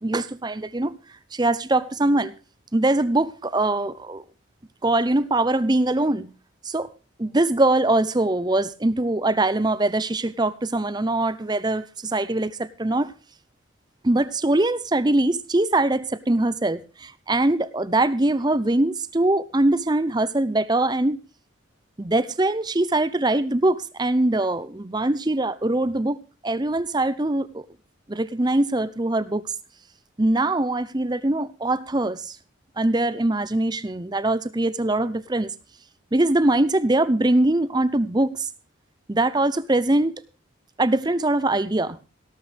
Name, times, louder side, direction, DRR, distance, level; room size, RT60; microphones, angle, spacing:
voice 1, 0.0-0.9 1.3-2.3 2.7-4.2 4.8-6.3 6.7-6.9 7.2-13.1 14.0-21.2 22.0-27.6 28.1-29.4 30.2-32.4 32.8-35.5 36.1-38.5 39.1-40.2 40.8-42.0, right 2 dB, 20° right, 0.6 m, -22 dB
18.0 x 12.5 x 3.4 m
head